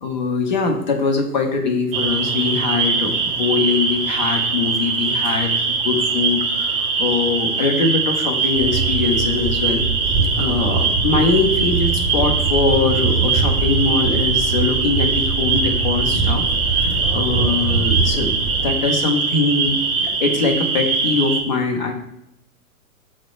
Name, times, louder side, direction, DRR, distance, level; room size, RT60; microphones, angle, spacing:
voice 1, 0.0-9.8 10.4-21.9, left 4 dB, 35° left, 2 dB, 0.4 m, -22 dB
sound 1, 1.9-21.4, right 4 dB, 40° right, 0.5 m, -22 dB
sound 2, 8.6-18.7, right 4 dB, 20° right, 1.0 m, -23 dB
5.8 x 2.1 x 2.3 m, 0.82 s
figure-of-eight pair, 110°, 45 cm